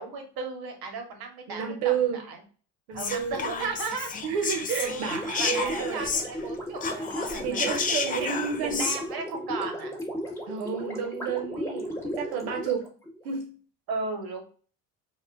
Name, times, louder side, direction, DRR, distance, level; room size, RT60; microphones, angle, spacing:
voice 1, 0.0-2.4 2.9-4.1 4.8-5.1 5.4-7.7 8.1-10.0 13.9-14.4, right 4 dB, 55° right, 3 dB, 1.0 m, -35 dB
voice 2, 1.5-2.2 2.9-3.7 4.2-6.1 7.4-8.9 10.5-12.9 13.2-13.5, right 7 dB, 90° right, 3 dB, 0.6 m, -30 dB
Whispering, 2.9-6.5 6.8-9.0, left 5 dB, 20° left, 0.3 m, -31 dB
Gurgling, 5.0-13.4, equal, 5° left, 0.9 m, -35 dB
2.2 x 2.1 x 3.3 m, 0.40 s
hypercardioid pair, 60°, 44 cm